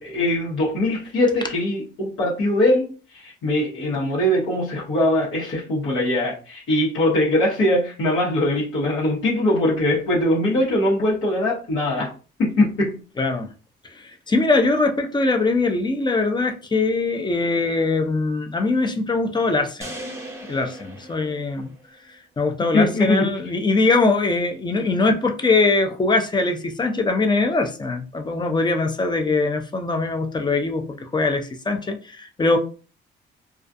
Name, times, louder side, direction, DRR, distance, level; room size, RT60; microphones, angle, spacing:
voice 1, 0.0-12.1 12.4-13.0 22.7-23.3, left 1 dB, 80° left, 1.0 m, -21 dB
voice 2, 13.2-13.5 13.9-19.9 20.5-21.7 22.4-32.6, left 3 dB, 20° left, 0.5 m, -22 dB
sound 1, 19.8-22.1, right 1 dB, 15° right, 0.8 m, -38 dB
2.3 x 2.3 x 2.6 m
cardioid pair, 90°, 20 cm